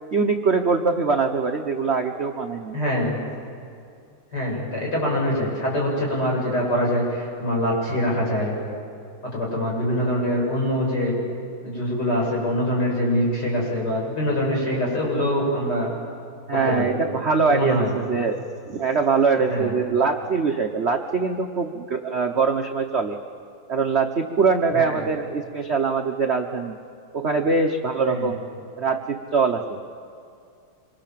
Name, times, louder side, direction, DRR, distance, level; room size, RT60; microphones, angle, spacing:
voice 1, 0.1-2.8 16.5-18.4 18.7-23.2 23.7-26.8 27.1-28.4 28.8-29.8, right 5 dB, 45° right, 4 dB, 1.0 m, -23 dB
voice 2, 2.7-3.2 4.3-8.5 9.3-11.1 11.6-15.9 16.6-16.9 17.5-17.9 19.5-19.7 24.7-25.1 28.1-28.3, equal, 45° left, -3 dB, 7.6 m, -24 dB
26.5 x 24.5 x 7.5 m, 2.4 s
omnidirectional pair, 2.4 m